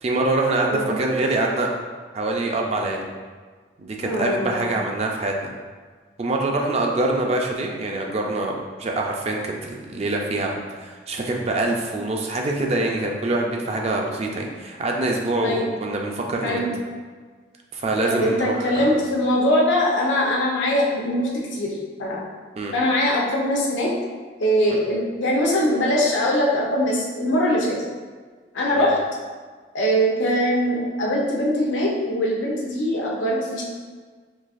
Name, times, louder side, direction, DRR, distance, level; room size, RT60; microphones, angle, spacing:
voice 1, 0.0-1.7 2.1-3.0 3.8-5.5 6.2-8.5 8.8-16.6 17.7-18.9 22.6-22.7 28.8-28.9, right 2 dB, 35° right, 1 dB, 0.4 m, -25 dB
voice 2, 4.0-4.8 15.4-15.7 16.4-16.7 18.0-22.2 22.7-24.0 24.4-27.8 28.5-29.0 29.7-33.6, equal, 90° left, -3 dB, 0.7 m, -22 dB
3.9 x 2.7 x 2.4 m, 1.5 s
head